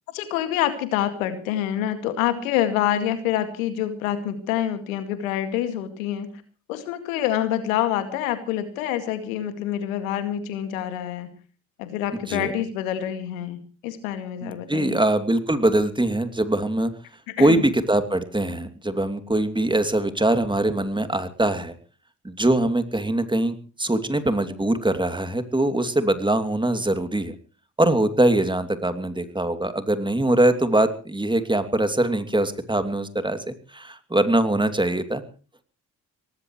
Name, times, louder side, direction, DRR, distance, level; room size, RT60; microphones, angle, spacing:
voice 1, 0.1-6.3 6.7-11.3 11.8-15.0 17.3-17.6, left 11 dB, 85° left, 9 dB, 2.3 m, -26 dB
voice 2, 14.4-16.9 17.4-21.7 22.2-27.3 27.8-35.2, right 1 dB, 10° right, 9 dB, 2.8 m, -22 dB
24.5 x 18.5 x 3.2 m, 0.38 s
hypercardioid pair, 55°, 40 cm